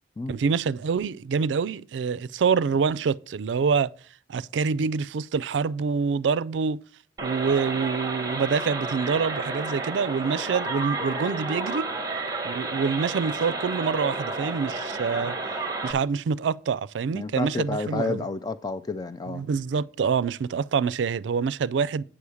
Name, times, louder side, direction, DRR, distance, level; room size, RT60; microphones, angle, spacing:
voice 1, 0.3-3.9 4.3-6.8 7.2-11.9 12.4-15.3 15.8-18.3 19.3-22.0, right 5 dB, 80° right, 0.4 m, -26 dB
sound 1, 7.2-15.9, right 3 dB, 20° right, 1.3 m, -31 dB
voice 2, 17.1-19.5, left 3 dB, 20° left, 0.3 m, -30 dB
8.7 x 4.9 x 7.0 m
head